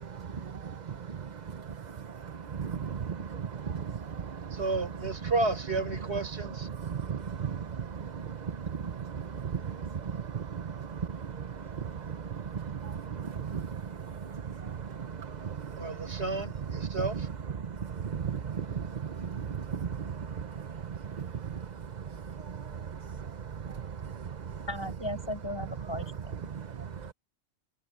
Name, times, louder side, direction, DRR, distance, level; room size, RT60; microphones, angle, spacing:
voice 1, 0.0-2.0 2.2-4.6 6.8-16.2 17.6-21.6 22.0-22.1 22.4-22.8 23.6-24.5 26.5-26.9, right 7 dB, 40° right, 0.9 m, -37 dB
voice 2, 4.5-6.7 15.8-17.3, right 2 dB, 70° right, 4.8 m, -32 dB
voice 3, 24.7-26.5, left 1 dB, 20° left, 6.1 m, -37 dB
omnidirectional pair, 1.2 m